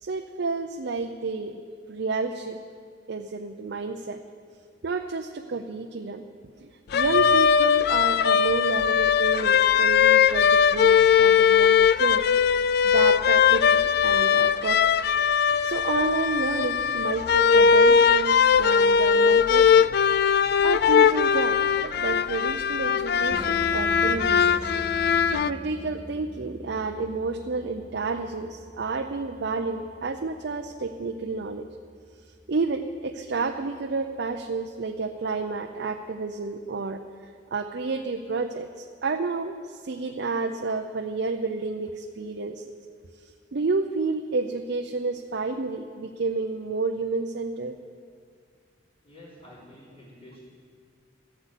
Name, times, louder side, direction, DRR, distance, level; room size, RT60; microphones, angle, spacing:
voice 1, 0.0-1.6 1.9-2.6 3.1-4.2 4.8-6.2 6.6-12.3 12.8-14.8 15.6-19.9 20.6-24.7 25.3-31.7 32.5-37.0 37.5-42.6 43.5-47.8, right 3 dB, 65° right, 5 dB, 0.6 m, -30 dB
sound 1, 6.9-25.5, left 7 dB, 60° left, 0.3 m, -20 dB
sound 2, 23.3-34.7, equal, 5° right, 0.7 m, -43 dB
voice 2, 49.0-50.4, left 1 dB, 35° left, -10 dB, 3.3 m, -48 dB
13.5 x 8.0 x 8.3 m, 2.1 s
head